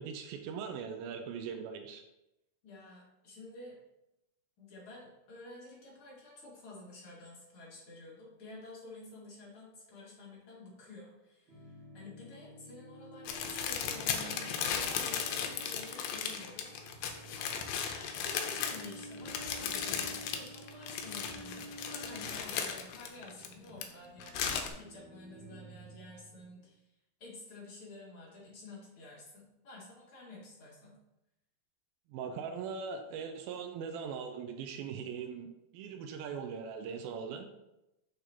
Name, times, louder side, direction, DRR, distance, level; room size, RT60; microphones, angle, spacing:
voice 1, 0.0-2.0 32.1-37.5, right 6 dB, 85° right, 6 dB, 2.4 m, -40 dB
voice 2, 2.6-3.8 4.6-26.8 27.2-31.0, left 2 dB, 40° left, -5 dB, 2.6 m, -51 dB
sound 1, 11.5-26.6, right 1 dB, 40° right, 2.6 m, -51 dB
sound 2, 13.3-23.8 24.2-24.7, left 7 dB, 85° left, 2.4 m, -36 dB
7.0 x 6.3 x 2.9 m, 0.90 s
omnidirectional pair, 4.2 m